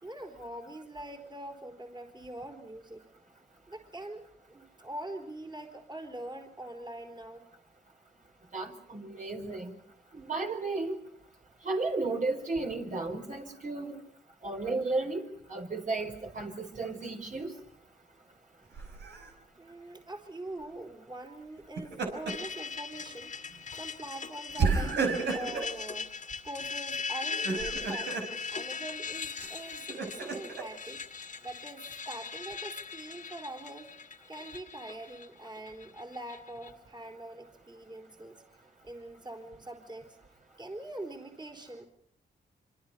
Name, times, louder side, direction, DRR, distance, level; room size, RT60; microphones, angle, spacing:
voice 1, 0.0-3.0 3.7-7.4 19.6-23.3 23.8-25.0 25.3-26.1 26.4-28.1 28.5-31.0 31.4-33.9 34.3-38.4 38.8-40.2 40.6-41.8, right 1 dB, 25° right, 3 dB, 4.3 m, -43 dB
voice 2, 8.5-9.8 10.1-11.0 11.6-14.0 14.4-17.5, right 3 dB, 50° right, 2 dB, 4.8 m, -34 dB
Laughter, 18.7-19.3 21.6-22.5 22.9-23.1 24.6-25.7 27.3-28.3 29.4-30.6, right 4 dB, 80° right, 5.5 m, -31 dB
sound 1, 22.3-36.7, left 5 dB, 45° left, 2.0 m, -40 dB
26.5 x 25.5 x 5.8 m, 0.65 s
cardioid pair, 75°, 18 cm